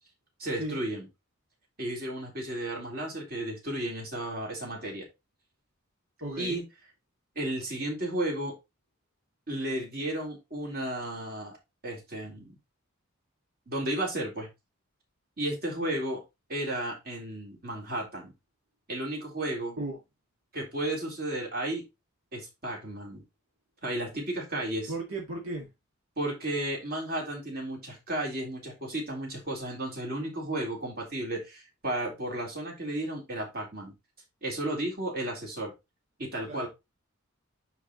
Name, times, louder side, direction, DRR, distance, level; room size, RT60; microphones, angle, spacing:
voice 1, 0.4-1.1 1.8-5.0 6.4-6.6 7.4-8.5 9.5-11.6 11.8-12.5 13.7-14.5 15.4-16.2 16.5-18.3 18.9-19.8 20.5-21.8 22.3-23.2 23.8-24.9 26.2-33.9 34.4-35.7 36.2-36.7, right 1 dB, 50° right, 3.8 m, -33 dB
voice 2, 6.2-6.6 19.8-20.0 24.9-25.7 36.5-36.7, right 2 dB, 80° right, 2.0 m, -35 dB
9.8 x 4.8 x 3.1 m
head